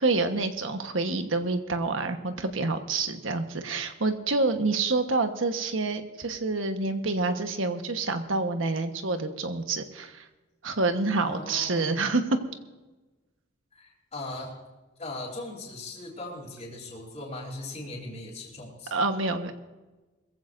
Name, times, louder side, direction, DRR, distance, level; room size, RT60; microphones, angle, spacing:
voice 1, 0.0-10.3 10.6-12.2 18.9-19.5, right 3 dB, 80° right, 7 dB, 1.3 m, -27 dB
voice 2, 11.2-12.1 13.7-14.6 15.0-18.9, left 2 dB, 35° left, -7 dB, 3.7 m, -39 dB
22.0 x 15.0 x 2.6 m, 1.2 s
head